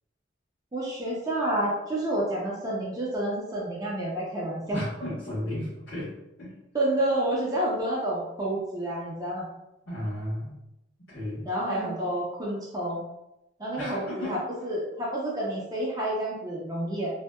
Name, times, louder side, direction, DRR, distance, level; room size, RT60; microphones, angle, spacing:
voice 1, 0.7-4.8 6.7-9.5 11.4-13.0 13.6-17.1, right 1 dB, 20° right, -5 dB, 0.4 m, -29 dB
voice 2, 4.7-6.1 6.4-6.5 9.8-10.5 11.1-11.4 13.8-14.3, left 1 dB, 80° left, -12 dB, 1.1 m, -34 dB
2.6 x 2.1 x 2.2 m, 0.90 s
head